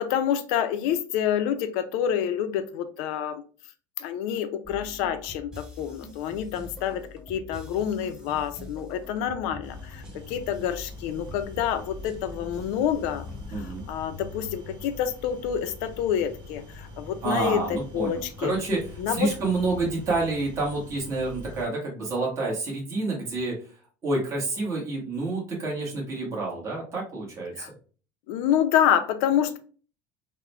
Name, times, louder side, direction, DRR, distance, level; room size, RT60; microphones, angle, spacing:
voice 1, 0.0-3.4 4.0-13.2 13.5-18.5 19.0-19.3 27.6-27.7 28.3-29.6, left 9 dB, 70° left, 9 dB, 0.5 m, -27 dB
sound 1, 4.6-13.9, left 1 dB, 5° right, 0.6 m, -44 dB
sound 2, 9.6-21.6, left 2 dB, 55° right, 1.3 m, -43 dB
voice 2, 13.5-13.8 17.2-23.6 24.0-27.7, right 3 dB, 30° right, -3 dB, 1.4 m, -28 dB
3.6 x 2.1 x 3.2 m, 0.39 s
cardioid pair, 140°, 9 cm